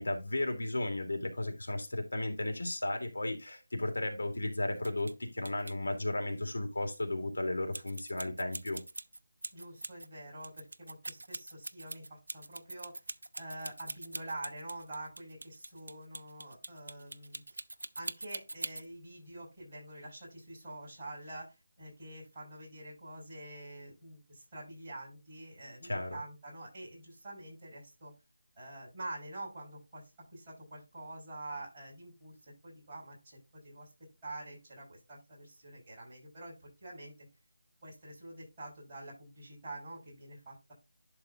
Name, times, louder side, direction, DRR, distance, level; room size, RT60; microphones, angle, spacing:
voice 1, 0.0-8.8 25.8-26.2, left 1 dB, 80° left, 2.9 m, -34 dB
sound 1, 4.8-5.1 5.4-5.7 7.7-10.1 10.4-18.9, right 2 dB, 85° right, 0.7 m, -42 dB
voice 2, 9.5-13.0 13.3-17.6 18.0-28.1 28.6-33.9 34.2-37.3 37.8-40.7, right 1 dB, 15° right, 5.7 m, -46 dB
11.0 x 4.2 x 3.7 m
figure-of-eight pair, 180°, 0 cm